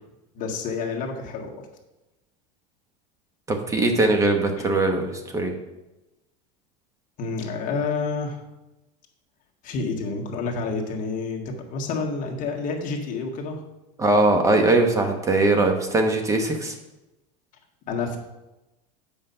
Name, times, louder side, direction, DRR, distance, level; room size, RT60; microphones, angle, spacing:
voice 1, 0.3-1.5 4.6-4.7 7.2-8.4 9.6-13.6 17.9-18.2, left 4 dB, 40° left, 0 dB, 1.6 m, -29 dB
voice 2, 3.5-5.5 14.0-16.7, right 2 dB, 15° right, 5 dB, 1.0 m, -21 dB
7.7 x 5.2 x 5.6 m, 0.99 s
supercardioid pair, 145°, 20 cm